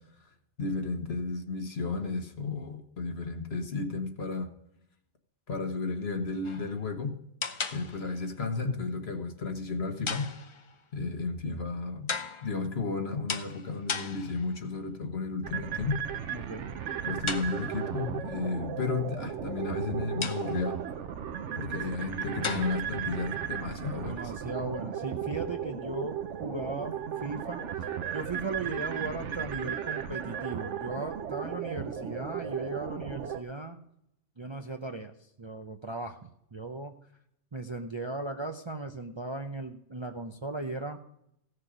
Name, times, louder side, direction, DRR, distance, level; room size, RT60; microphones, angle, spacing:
voice 1, 0.6-4.5 5.5-7.1 7.7-10.3 10.9-12.1 12.4-15.9 17.0-20.8 21.6-24.2, left 4 dB, 60° left, 5 dB, 1.6 m, -33 dB
sound 1, 6.4-6.8 7.4-8.3 10.1-10.8 12.1-12.7 13.3-14.7 17.3-18.0 20.2-20.8 22.4-23.0, left 5 dB, 35° left, 0.5 m, -37 dB
sound 2, 15.4-33.4, right 9 dB, 80° right, 1.1 m, -35 dB
voice 2, 16.3-16.7 21.9-22.0 23.9-27.6 28.1-33.8 34.4-37.0 37.5-41.0, right 2 dB, 30° right, 5 dB, 0.6 m, -37 dB
15.5 x 6.6 x 5.0 m, 0.76 s
omnidirectional pair, 1.2 m